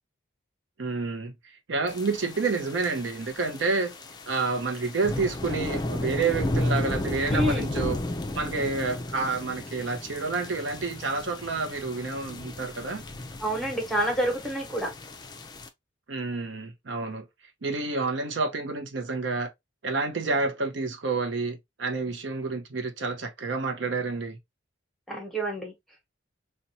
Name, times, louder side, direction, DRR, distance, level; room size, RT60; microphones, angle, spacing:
voice 1, 0.8-1.3 1.7-3.9 4.3-8.0 8.4-13.0 16.1-17.3 17.6-19.5 19.8-24.4, right 4 dB, 70° right, 0.6 m, -29 dB
sound 1, 1.9-15.7, left 1 dB, 20° left, 0.4 m, -34 dB
voice 2, 7.3-7.7 13.4-14.9 25.1-25.7, right 1 dB, ahead, 1.0 m, -28 dB
4.0 x 2.2 x 2.7 m
head